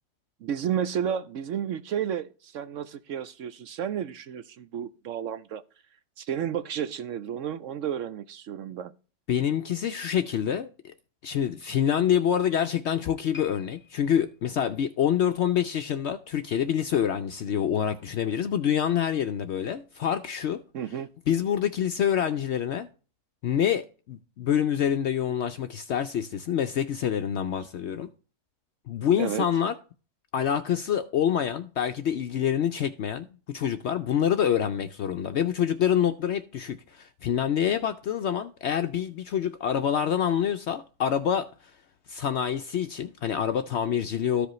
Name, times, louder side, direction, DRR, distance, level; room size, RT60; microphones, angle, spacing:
voice 1, 0.4-5.6 6.2-8.9 20.7-21.1 29.2-29.5, right 9 dB, 65° right, 0.9 m, -32 dB
voice 2, 9.3-10.9 11.2-20.6 21.3-22.9 23.4-28.1 28.9-29.7 30.3-41.5 42.1-44.5, left 9 dB, 65° left, 0.7 m, -26 dB
sound 1, 13.3-16.6 16.9-17.2 17.9-18.0, left 8 dB, 10° left, 1.2 m, -52 dB
14.0 x 5.1 x 3.1 m
omnidirectional pair, 1.6 m